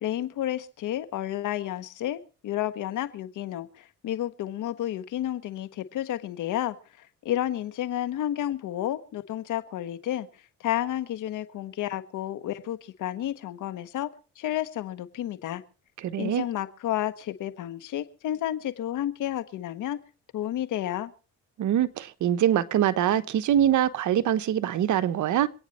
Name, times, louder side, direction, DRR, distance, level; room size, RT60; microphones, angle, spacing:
voice 1, 0.0-10.3 10.6-15.6 16.2-20.0 20.3-21.1, left 12 dB, 85° left, 1.6 m, -31 dB
voice 2, 16.0-16.4 21.6-25.5, right 11 dB, 75° right, 1.2 m, -24 dB
26.5 x 9.5 x 4.3 m
cardioid pair, 90°, 30 cm